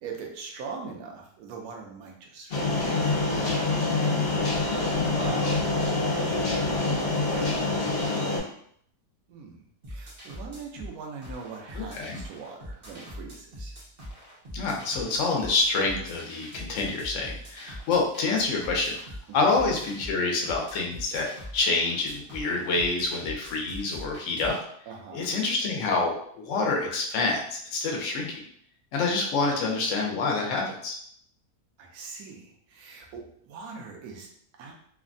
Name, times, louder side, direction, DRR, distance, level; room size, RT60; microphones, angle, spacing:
voice 1, 0.0-4.6 5.1-8.0 9.3-9.6 9.9-13.8 19.3-19.6 24.9-25.4 31.8-34.7, right 5 dB, 70° right, 1 dB, 1.1 m, -42 dB
sound 1, 2.5-8.4, left 3 dB, 45° left, 1.2 m, -26 dB
voice 2, 5.1-5.5 11.8-12.2 14.5-19.0 19.3-24.5 25.1-28.4 28.9-31.0, left 3 dB, 60° left, 0 dB, 0.9 m, -27 dB
sound 2, 9.8-24.6, equal, 40° right, 0.6 m, -42 dB
3.2 x 2.2 x 2.5 m, 0.65 s
omnidirectional pair, 1.7 m